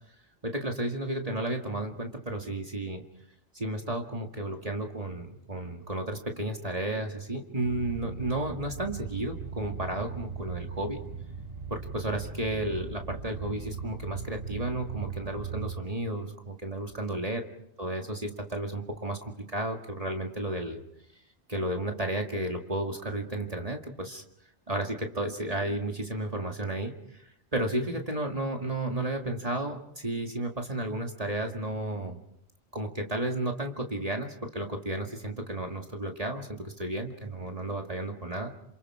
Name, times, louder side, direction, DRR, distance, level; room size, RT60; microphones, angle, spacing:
voice 1, 0.4-3.0 3.5-11.0 11.7-17.4 17.8-20.8 21.5-24.2 24.7-27.2 27.5-32.2 32.7-38.5, right 1 dB, 35° right, 2 dB, 2.1 m, -33 dB
sound 1, 7.6-15.7, right 5 dB, 55° right, 7.4 m, -39 dB
28.5 x 27.5 x 4.9 m, 0.76 s
omnidirectional pair, 1.2 m